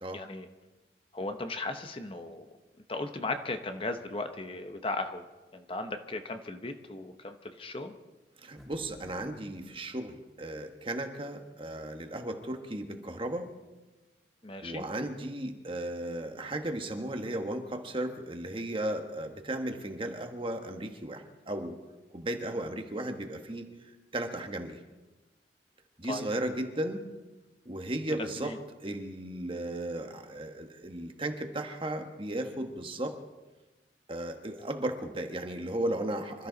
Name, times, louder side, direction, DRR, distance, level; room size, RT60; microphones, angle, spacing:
voice 1, 0.1-0.5 1.1-2.5 2.9-5.2 5.5-7.9 14.4-14.8 26.1-26.2 28.4-28.6, left 2 dB, 30° left, 7 dB, 0.9 m, -36 dB
voice 2, 8.4-13.5 14.6-21.8 22.1-23.7 24.1-24.8 26.0-27.0 27.6-28.5 28.8-33.1 34.1-36.5, right 1 dB, 30° right, 5 dB, 1.4 m, -35 dB
sound 1, 8.6-9.7, equal, ahead, 2.5 m, -52 dB
26.5 x 13.5 x 4.0 m, 1.2 s
head